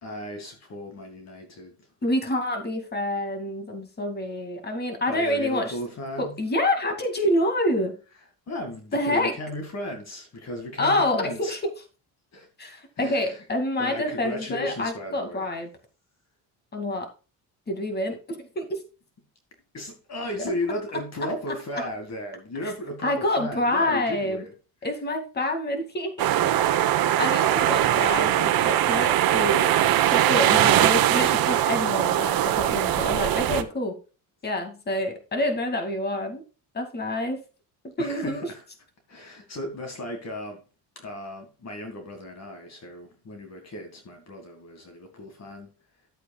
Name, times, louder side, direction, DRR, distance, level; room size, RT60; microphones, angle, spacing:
voice 1, 0.0-1.7 5.1-6.3 8.5-11.6 12.3-12.7 13.0-13.4 13.8-15.5 19.7-24.5 24.8-24.9 27.4-27.9 38.0-38.6 39.1-40.6 41.0-45.7, left 1 dB, 40° left, 2.1 m, -35 dB
voice 2, 2.0-5.7 6.2-8.0 8.9-9.3 10.8-11.6 12.6-15.7 16.7-17.1 17.7-18.8 22.6-22.7 23.0-24.4 24.8-26.1 27.2-29.8 30.1-34.0 34.4-36.4 36.7-37.4 38.0-38.5, left 1 dB, 25° left, 2.3 m, -27 dB
sound 1, 26.2-33.6, right 12 dB, 60° right, 1.0 m, -21 dB
11.5 x 8.4 x 2.3 m
cardioid pair, 115°, 39 cm